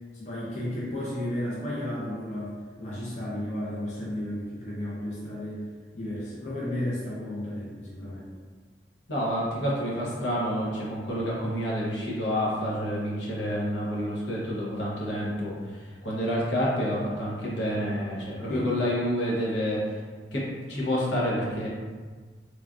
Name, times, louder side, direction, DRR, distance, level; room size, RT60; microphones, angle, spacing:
voice 1, 0.1-5.6 5.9-8.3 18.5-18.7, left 1 dB, 40° left, -6 dB, 0.5 m, -33 dB
voice 2, 9.1-15.8 16.0-19.8 20.3-21.7, equal, 80° left, -6 dB, 0.8 m, -28 dB
3.1 x 2.4 x 2.3 m, 1.5 s
head